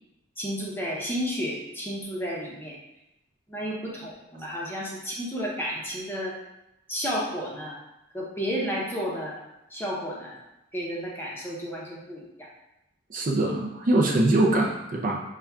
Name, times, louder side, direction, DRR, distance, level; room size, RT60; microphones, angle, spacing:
voice 1, 0.4-2.8 3.5-6.3 6.9-7.8 8.1-9.4 9.7-10.4 10.7-12.5, equal, 10° left, -3 dB, 0.7 m, -32 dB
voice 2, 13.1-15.2, right 2 dB, 40° right, 0 dB, 0.4 m, -23 dB
5.6 x 2.3 x 3.4 m, 0.90 s
head